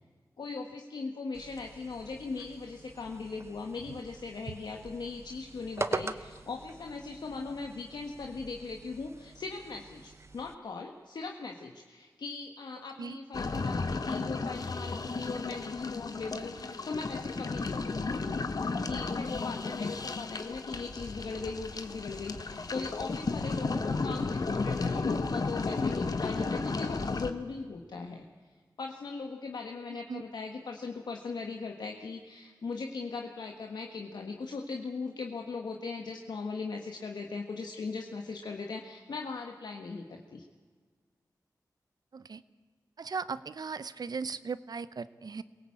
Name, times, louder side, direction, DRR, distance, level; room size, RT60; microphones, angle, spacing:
voice 1, 0.4-18.5 18.8-28.2 28.8-40.4, left 4 dB, 85° left, 2 dB, 1.5 m, -39 dB
sound 1, 1.3-10.5, right 3 dB, 40° right, 1.0 m, -43 dB
sound 2, 13.3-27.3, left 3 dB, 60° left, 1.3 m, -33 dB
voice 2, 43.0-45.4, right 5 dB, 70° right, 15 dB, 0.8 m, -37 dB
23.0 x 18.0 x 8.6 m, 1.5 s
wide cardioid pair, 70°, 7 cm